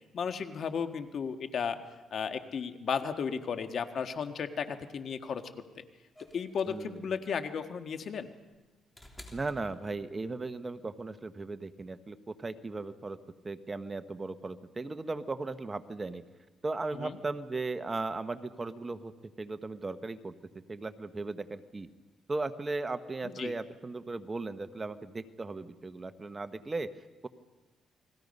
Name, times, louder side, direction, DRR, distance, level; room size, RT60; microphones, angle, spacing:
voice 1, 0.1-1.8 2.1-5.5 5.8-5.9 6.3-8.3 16.9-17.2 23.2-23.5, left 6 dB, 55° left, 8 dB, 1.6 m, -34 dB
sound 1, 6.2-10.4 11.7-11.8, left 1 dB, 10° left, 3.3 m, -53 dB
voice 2, 6.7-7.1 9.3-13.2 13.4-16.2 16.6-19.1 19.4-20.3 20.7-21.9 22.3-27.3, right 3 dB, 25° right, 10 dB, 1.1 m, -37 dB
30.0 x 21.0 x 5.4 m, 1.2 s
cardioid pair, 90°, 0 cm